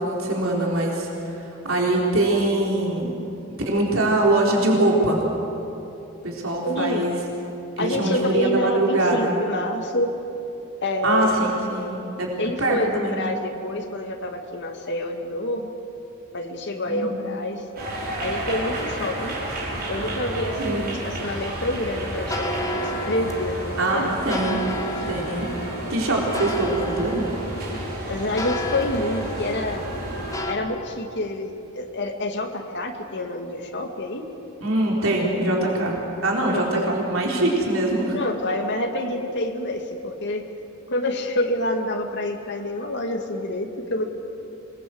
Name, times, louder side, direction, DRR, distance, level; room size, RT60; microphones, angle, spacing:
voice 1, 0.0-3.1 3.6-5.3 6.2-7.2 7.8-9.3 11.0-12.3 12.6-13.1 16.9-17.2 20.6-20.8 23.8-24.6 25.1-25.5 25.9-27.3 34.6-38.2, right 2 dB, 70° right, -2 dB, 4.2 m, -23 dB
voice 2, 6.6-7.1 7.8-10.2 10.8-11.5 12.4-15.7 16.3-17.6 18.2-19.3 19.9-22.8 23.1-23.6 23.9-24.1 25.0-25.1 28.1-29.9 30.5-34.3 36.5-36.9 38.1-40.4 40.9-44.1, left 1 dB, 55° left, 3 dB, 2.2 m, -27 dB
sound 1, 17.8-30.3, right 1 dB, 45° right, 6.3 m, -31 dB
sound 2, 20.1-30.5, equal, 15° left, 2.2 m, -33 dB
27.0 x 21.0 x 7.9 m, 3.0 s
head